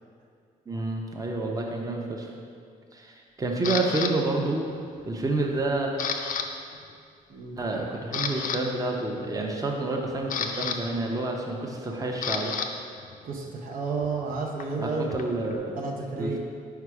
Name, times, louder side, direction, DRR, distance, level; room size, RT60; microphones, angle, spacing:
voice 1, 0.7-2.3 2.9-4.7 5.1-5.9 7.6-12.6 14.8-15.7 16.2-16.4, right 2 dB, 25° right, 0 dB, 0.8 m, -29 dB
Camera, 3.6-4.1 4.7-5.1 5.4-6.5 6.7-6.9 7.5-7.6 8.0-8.6 9.8-12.7 13.0-15.6, left 6 dB, 60° left, 0.4 m, -32 dB
voice 2, 13.2-15.1 15.8-16.4, right 4 dB, 65° right, -1 dB, 0.7 m, -31 dB
4.7 x 4.7 x 4.7 m, 2.3 s
cardioid pair, 85°, 15 cm